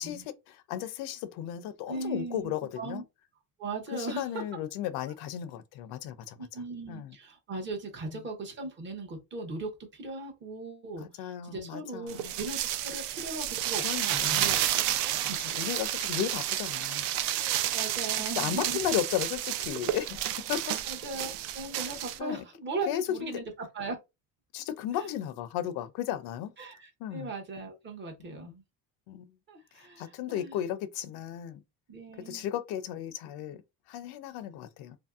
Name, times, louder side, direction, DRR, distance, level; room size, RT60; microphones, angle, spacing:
voice 1, 0.0-3.0 3.9-6.5 6.9-7.2 8.0-8.2 11.0-12.3 13.8-14.5 15.4-17.1 18.3-20.2 20.5-20.8 22.2-22.4 22.9-23.4 24.5-26.5 27.0-27.3 28.2-28.4 29.1-29.3 29.7-31.6 32.2-33.6 33.9-35.0, left 11 dB, 65° left, 0.5 m, -35 dB
voice 2, 1.9-3.0 3.6-4.4 6.4-14.7 15.0-15.4 17.4-18.8 20.9-24.0 24.9-25.1 26.6-28.6 29.5-30.5 31.9-32.5, right 3 dB, 30° right, 0.6 m, -38 dB
sound 1, 12.1-22.2, right 12 dB, 75° right, 0.5 m, -31 dB
2.9 x 2.6 x 2.3 m
cardioid pair, 165°, 41 cm